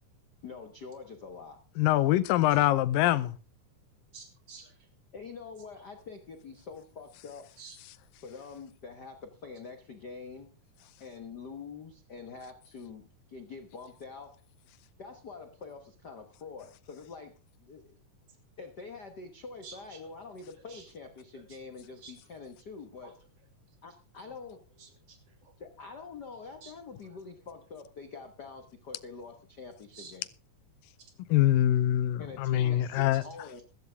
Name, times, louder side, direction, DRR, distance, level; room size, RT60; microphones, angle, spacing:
voice 1, 0.4-1.6 5.1-7.5 8.2-10.5 11.0-14.3 15.0-17.3 17.6-18.0 18.6-23.2 23.8-24.6 25.6-30.3 32.2-33.6, left 4 dB, 70° left, 0.9 m, -45 dB
voice 2, 1.8-3.4 31.3-33.2, left 13 dB, 85° left, 2.5 m, -24 dB
voice 3, 4.1-4.7 7.6-7.8 19.6-20.0 20.7-20.9 21.4-21.6 22.0-22.1 23.0-23.1 24.8-25.3 26.6-26.7 27.1-27.2 29.9-30.1, right 5 dB, 45° right, 3.9 m, -50 dB
15.5 x 14.0 x 3.5 m
omnidirectional pair, 3.9 m